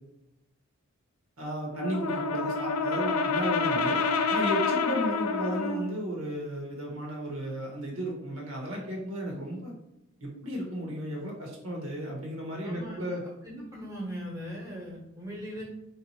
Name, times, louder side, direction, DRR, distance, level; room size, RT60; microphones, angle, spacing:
voice 1, 1.4-4.0 4.3-9.7 10.2-13.2, equal, 75° right, -2 dB, 1.2 m, -34 dB
Brass instrument, 1.7-5.9, left 4 dB, 90° left, 0.5 m, -28 dB
voice 2, 12.6-15.6, equal, 15° right, -4 dB, 1.1 m, -40 dB
3.8 x 2.7 x 4.3 m, 0.86 s
head